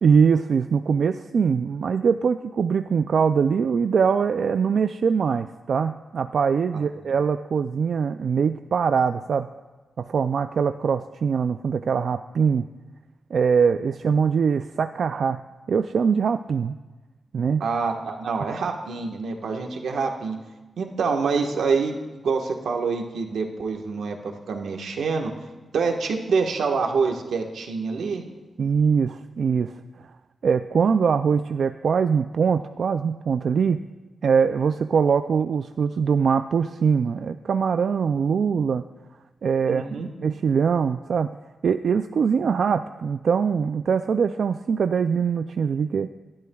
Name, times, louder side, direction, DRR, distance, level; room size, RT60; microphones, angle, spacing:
voice 1, 0.0-9.5 10.0-12.7 13.3-16.8 17.3-17.6 28.6-29.7 30.0-30.1 30.4-33.8 34.2-38.8 39.4-41.3 41.6-46.1, right 6 dB, 65° right, 9 dB, 0.3 m, -22 dB
voice 2, 17.6-20.4 20.8-25.3 25.7-28.2 39.7-40.1, right 5 dB, 90° right, 2 dB, 1.4 m, -26 dB
28.0 x 11.5 x 2.3 m, 1.2 s
wide cardioid pair, 130°, 0 cm